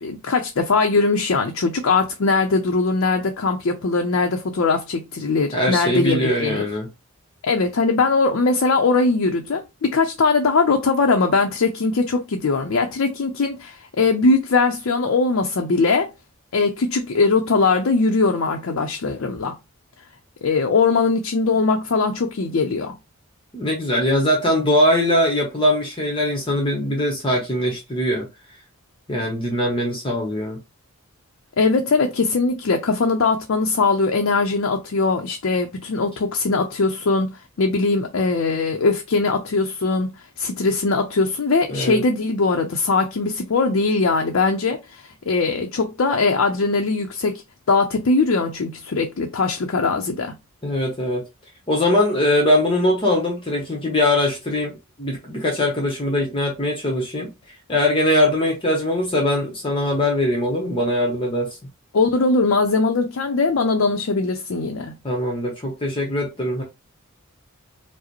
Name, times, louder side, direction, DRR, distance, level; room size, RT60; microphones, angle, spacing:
voice 1, 0.0-6.7 7.4-16.1 16.5-19.6 20.4-23.0 31.6-40.1 40.4-47.4 47.7-50.3 61.9-65.0, left 3 dB, 70° left, 0.5 m, -20 dB
voice 2, 5.5-6.9 23.5-28.3 29.1-30.6 41.7-42.0 50.6-51.2 51.7-54.7 55.0-57.3 57.7-61.5 65.0-66.6, left 1 dB, 25° left, 0.8 m, -21 dB
4.7 x 2.0 x 2.9 m
head